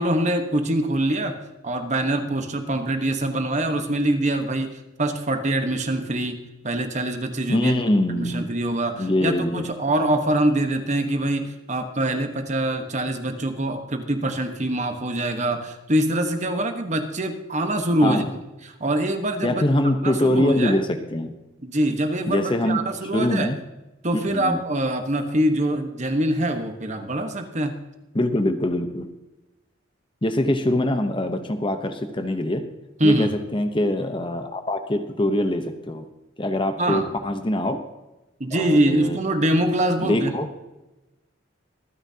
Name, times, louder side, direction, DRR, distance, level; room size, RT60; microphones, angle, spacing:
voice 1, 0.0-1.4 1.6-7.7 8.1-18.2 18.6-19.6 20.0-20.8 21.6-23.5 24.0-27.8 33.0-33.3 36.8-37.1 38.4-40.3, right 1 dB, 35° right, 6 dB, 1.2 m, -24 dB
voice 2, 7.5-8.5 9.0-9.6 18.0-18.3 19.4-21.3 22.3-22.8 23.1-23.6 24.3-24.6 28.1-29.1 30.2-32.6 33.0-36.0 36.4-37.8 38.5-39.2 40.0-40.5, left 1 dB, 25° left, 7 dB, 0.9 m, -23 dB
25.0 x 9.8 x 2.8 m, 1.0 s
head